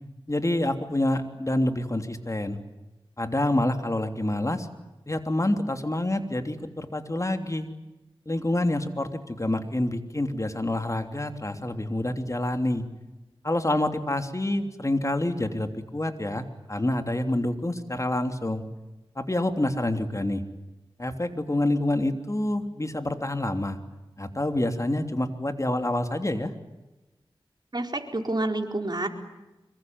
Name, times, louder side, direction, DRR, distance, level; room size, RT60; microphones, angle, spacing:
voice 1, 0.3-2.6 3.2-4.7 5.1-7.7 8.2-12.8 13.4-18.6 19.1-20.4 21.0-23.8 24.2-26.5, left 1 dB, 30° left, 7 dB, 3.2 m, -27 dB
voice 2, 27.7-29.1, right 2 dB, 45° right, 4 dB, 4.3 m, -28 dB
25.5 x 23.5 x 9.6 m, 1.1 s
cardioid pair, 40°, 10 cm